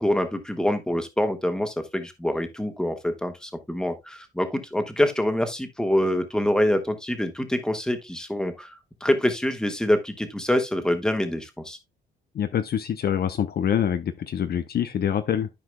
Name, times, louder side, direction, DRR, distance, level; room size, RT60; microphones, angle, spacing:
voice 1, 0.0-11.8, left 1 dB, 5° left, 1.4 m, -25 dB
voice 2, 12.3-15.5, left 9 dB, 50° left, 0.7 m, -25 dB
13.0 x 4.8 x 2.2 m
cardioid pair, 90°, 20 cm